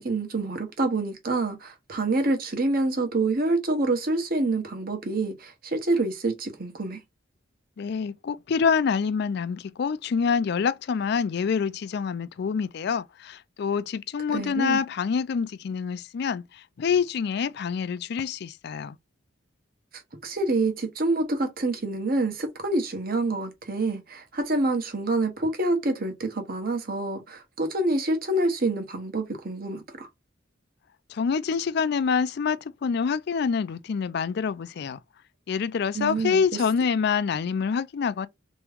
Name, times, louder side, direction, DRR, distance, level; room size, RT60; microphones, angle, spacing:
voice 1, 0.0-7.0 14.3-14.8 20.2-30.1 35.9-36.4, right 2 dB, 50° right, 1.1 m, -27 dB
voice 2, 7.8-19.0 31.1-35.0 35.5-38.3, left 6 dB, 60° left, 0.4 m, -26 dB
3.4 x 3.0 x 3.5 m
head